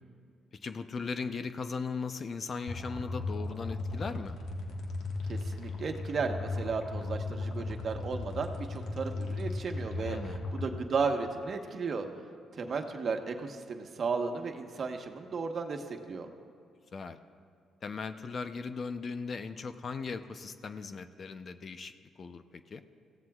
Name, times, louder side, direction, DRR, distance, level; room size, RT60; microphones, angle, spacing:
voice 1, 0.6-4.4 10.0-10.4 16.9-17.2 17.8-21.9 22.2-22.8, left 4 dB, 45° left, 9 dB, 0.7 m, -38 dB
sound 1, 2.7-10.7, left 2 dB, 75° left, 1.5 m, -36 dB
voice 2, 5.3-12.1 12.5-16.3, right 4 dB, 50° right, 4 dB, 1.2 m, -34 dB
24.5 x 15.5 x 2.4 m, 2.3 s
cardioid pair, 90°, 0 cm